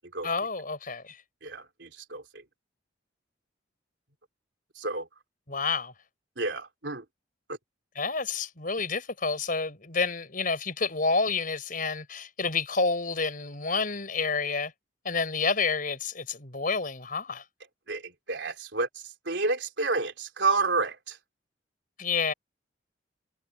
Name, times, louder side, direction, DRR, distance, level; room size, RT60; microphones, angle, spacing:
voice 1, 0.2-1.2 5.5-5.9 7.9-14.7 15.0-17.4 22.0-22.3, left 4 dB, 50° left, 5.0 m, -29 dB
voice 2, 1.4-2.4 4.8-5.1 6.4-7.0 7.5-7.6 17.9-21.2, right 3 dB, 70° right, 3.9 m, -30 dB
head